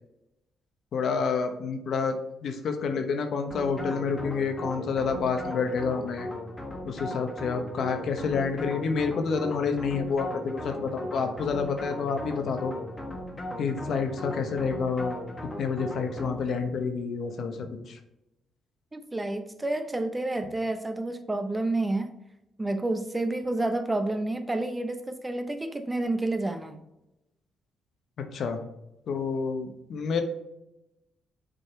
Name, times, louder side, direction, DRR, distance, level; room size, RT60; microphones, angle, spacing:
voice 1, 0.9-6.3 6.8-12.7 13.6-15.2 15.6-18.0 28.3-28.6 29.1-30.2, left 5 dB, 65° left, 6 dB, 0.9 m, -29 dB
sound 1, 3.5-16.7, left 1 dB, 20° left, 1.3 m, -38 dB
voice 2, 18.9-22.1 22.6-26.8, right 2 dB, 15° right, 8 dB, 0.7 m, -29 dB
6.6 x 4.0 x 4.5 m, 0.89 s
cardioid pair, 90°, 0 cm